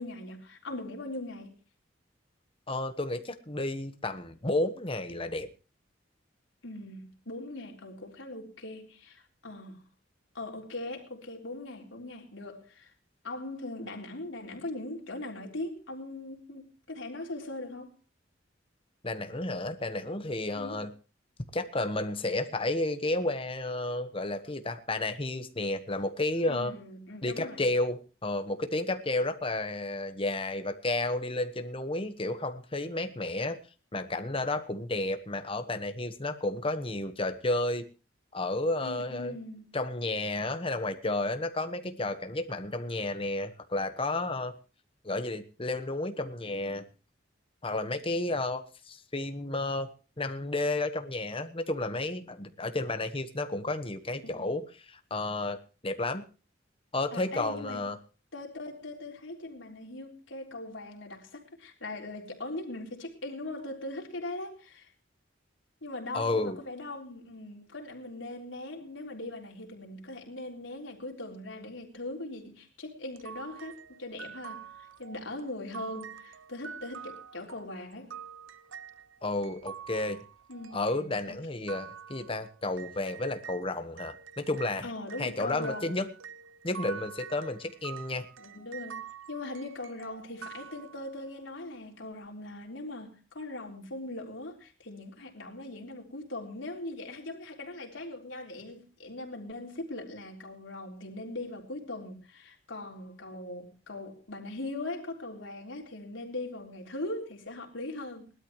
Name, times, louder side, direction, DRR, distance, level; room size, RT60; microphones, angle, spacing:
voice 1, 0.0-1.5 6.6-9.9 10.3-12.9 13.2-17.9 20.5-20.8 26.5-27.6 38.8-39.8 54.2-54.4 57.1-57.8 58.3-64.9 65.8-78.1 80.5-81.7 84.8-86.0 88.4-108.3, left 2 dB, 85° left, 3.7 m, -40 dB
voice 2, 2.7-5.5 19.0-20.9 21.5-26.7 27.2-33.6 33.9-37.9 38.3-39.3 39.7-44.5 45.0-46.8 47.6-49.9 50.2-55.6 55.8-56.2 56.9-58.0 66.1-66.6 79.2-80.2 80.7-84.9 85.2-86.1 86.6-88.3, left 2 dB, 30° left, 1.3 m, -32 dB
sound 1, 73.2-83.6 84.0-91.3, right 7 dB, 90° right, 0.7 m, -46 dB
20.0 x 12.5 x 3.2 m
head